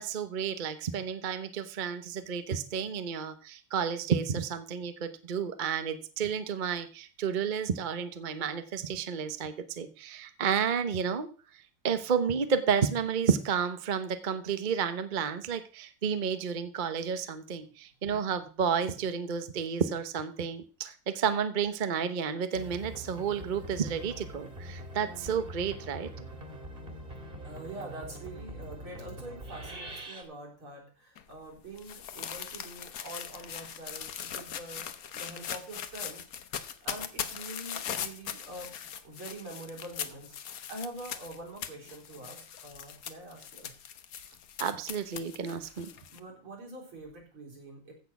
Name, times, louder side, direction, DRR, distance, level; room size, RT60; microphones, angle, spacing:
voice 1, 0.0-26.1 44.6-45.9, right 7 dB, 50° right, 10 dB, 0.5 m, -31 dB
sound 1, 22.5-30.2, right 1 dB, 25° right, 2.3 m, -43 dB
voice 2, 27.4-36.3 36.8-43.7 45.5-45.8 46.1-47.9, right 1 dB, 70° right, -1 dB, 4.8 m, -45 dB
sound 2, 31.2-46.2, left 8 dB, 55° left, 1.1 m, -40 dB
15.0 x 6.4 x 5.9 m, 0.38 s
omnidirectional pair, 2.4 m